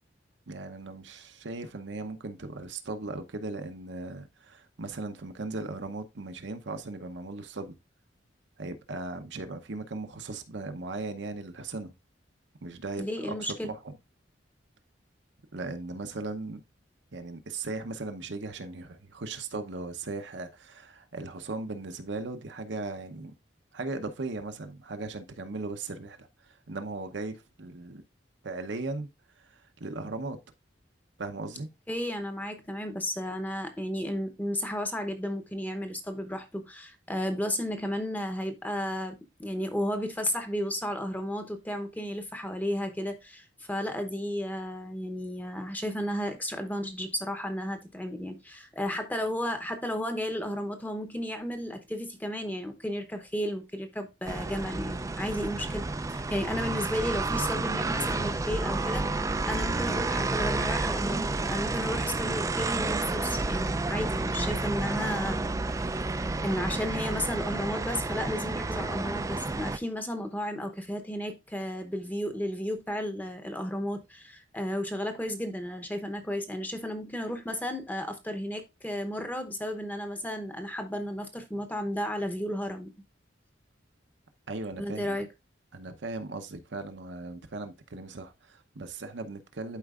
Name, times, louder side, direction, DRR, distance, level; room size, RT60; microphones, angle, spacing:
voice 1, 0.5-7.8 8.6-11.9 12.6-14.0 15.5-16.6 17.1-23.3 23.7-28.0 28.4-29.1 29.4-30.4 31.2-31.7 84.5-85.2 85.7-89.8, right 3 dB, 70° right, 0.8 m, -38 dB
voice 2, 13.0-13.7 31.9-65.6 66.0-82.9 84.8-85.3, equal, 10° left, 0.8 m, -33 dB
sound 1, 54.3-69.8, right 3 dB, 15° right, 0.4 m, -30 dB
11.5 x 4.5 x 2.4 m
head